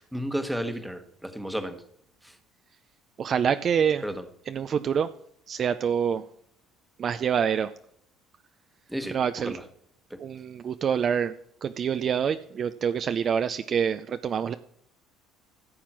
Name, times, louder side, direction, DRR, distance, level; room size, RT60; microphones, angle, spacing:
voice 1, 0.0-1.8 2.2-2.3 4.0-4.2 8.9-9.6 10.1-10.2, equal, ahead, 8 dB, 1.3 m, -33 dB
voice 2, 3.2-4.0 4.5-5.1 5.5-6.2 7.0-7.7 9.1-9.6 10.2-14.5, right 7 dB, 40° right, 10 dB, 0.5 m, -26 dB
15.0 x 7.3 x 6.2 m, 0.69 s
cardioid pair, 125°, 0 cm